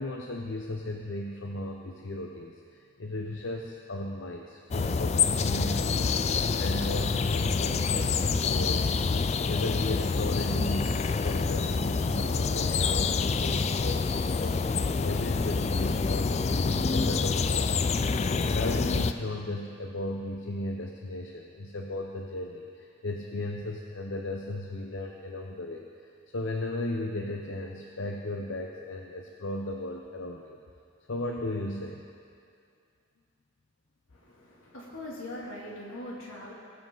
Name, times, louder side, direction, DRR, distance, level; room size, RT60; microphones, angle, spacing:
voice 1, 0.0-6.2 6.6-9.0 9.5-18.1 18.5-25.9 26.3-30.6 31.1-32.0, left 1 dB, 70° left, 1 dB, 0.7 m, -36 dB
sound 1, 4.7-19.1, left 4 dB, 30° left, 0.3 m, -27 dB
voice 2, 34.1-36.5, left 1 dB, 90° left, -4 dB, 2.6 m, -41 dB
21.0 x 7.6 x 3.9 m, 2.3 s
head